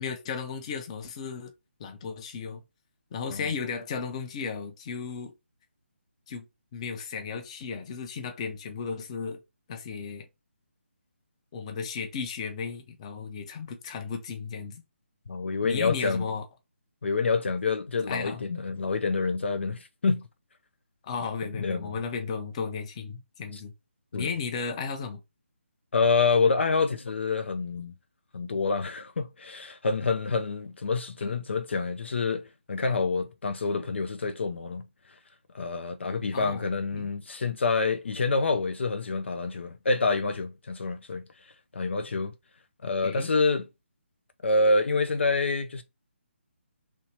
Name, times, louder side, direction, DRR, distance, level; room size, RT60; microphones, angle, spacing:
voice 1, 0.0-1.5 1.8-2.6 3.1-5.3 6.3-6.4 6.7-9.4 9.7-10.3 11.5-14.8 15.6-16.5 18.1-18.5 21.0-23.7 24.1-25.2 31.2-31.3 36.3-36.6 36.9-37.1 43.0-43.3, left 5 dB, 25° left, 0.7 m, -34 dB
voice 2, 15.3-16.3 17.0-20.3 21.5-21.9 24.1-24.3 25.9-27.9 28.3-34.9 35.5-42.3 42.8-43.7 44.4-45.8, left 4 dB, 65° left, 0.4 m, -27 dB
3.1 x 2.7 x 2.9 m
figure-of-eight pair, 150°, 7 cm